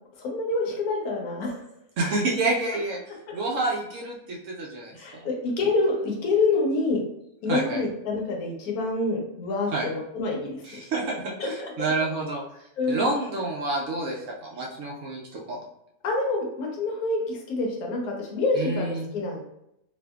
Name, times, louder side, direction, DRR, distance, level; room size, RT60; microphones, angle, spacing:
voice 1, 0.2-1.6 5.0-7.0 7.4-10.9 11.4-11.5 12.8-13.1 16.0-19.4, left 3 dB, 80° left, 0 dB, 1.2 m, -27 dB
voice 2, 2.0-3.0 3.3-4.9 7.5-7.8 9.7-9.9 10.6-12.4 12.9-15.6 18.5-19.1, right 2 dB, 65° right, -2 dB, 0.8 m, -28 dB
2.7 x 2.5 x 2.3 m, 0.80 s
omnidirectional pair, 1.6 m